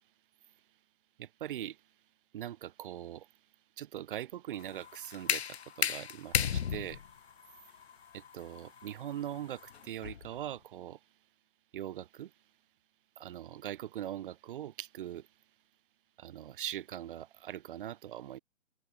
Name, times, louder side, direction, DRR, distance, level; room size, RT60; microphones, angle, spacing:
voice 1, 1.2-1.8 2.3-3.3 3.8-7.0 8.1-11.0 11.7-12.3 13.2-15.3 16.2-18.4, right 11 dB, 40° right, 3.5 m, -41 dB
sound 1, 4.6-10.4, left 8 dB, 55° left, 7.1 m, -35 dB
figure-of-eight pair, 135°, 38 cm